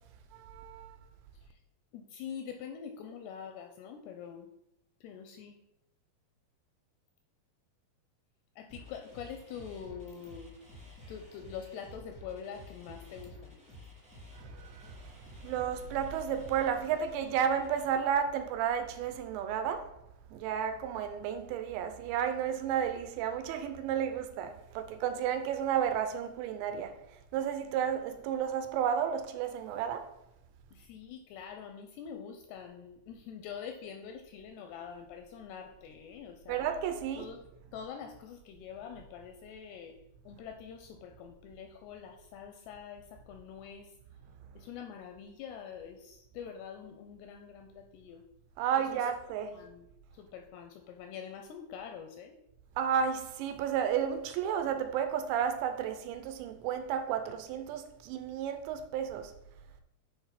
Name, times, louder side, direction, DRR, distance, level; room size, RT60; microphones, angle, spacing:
voice 1, 0.3-1.0 14.3-19.9 20.3-30.1 36.5-37.3 48.6-49.7 52.8-59.3, right 8 dB, 85° right, 2.9 m, -32 dB
voice 2, 1.9-4.5 5.0-5.6 8.6-10.5 11.1-13.6 30.7-36.7 37.2-37.4 37.7-40.0 40.2-43.9 44.6-48.2 48.8-49.1 49.5-49.9 50.1-52.4, left 7 dB, 85° left, 2.4 m, -45 dB
sound 1, 8.7-17.8, left 2 dB, 5° right, 1.0 m, -51 dB
7.0 x 4.7 x 5.7 m
omnidirectional pair, 5.2 m